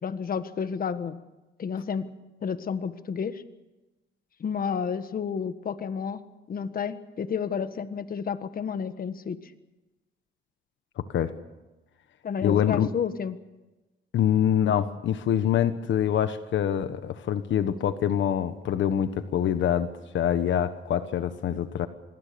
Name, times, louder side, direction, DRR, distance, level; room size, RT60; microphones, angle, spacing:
voice 1, 0.0-1.2 1.6-2.1 2.4-3.3 4.4-6.2 6.5-9.4 12.2-13.4, left 6 dB, 45° left, 11 dB, 1.5 m, -31 dB
voice 2, 11.0-11.3 12.4-12.9 14.1-21.9, left 9 dB, 70° left, 11 dB, 1.3 m, -25 dB
26.0 x 20.5 x 6.9 m, 1.1 s
cardioid pair, 90°, 20 cm